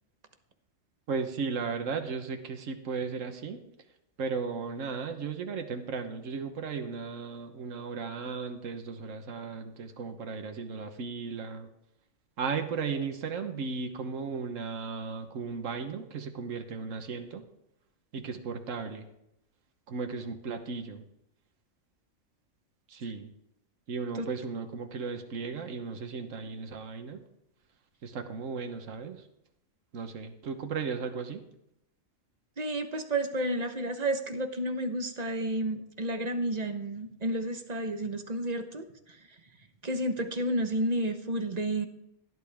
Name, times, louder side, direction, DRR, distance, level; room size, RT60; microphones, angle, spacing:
voice 1, 1.1-3.6 4.2-11.7 12.4-17.4 18.1-19.1 19.9-21.0 22.9-23.3 23.9-27.2 28.0-29.2 29.9-31.4, right 5 dB, 80° right, 6 dB, 1.5 m, -35 dB
voice 2, 32.6-39.2 39.8-41.9, right 1 dB, 35° right, 6 dB, 1.2 m, -31 dB
17.0 x 11.0 x 3.5 m, 0.81 s
omnidirectional pair, 1.3 m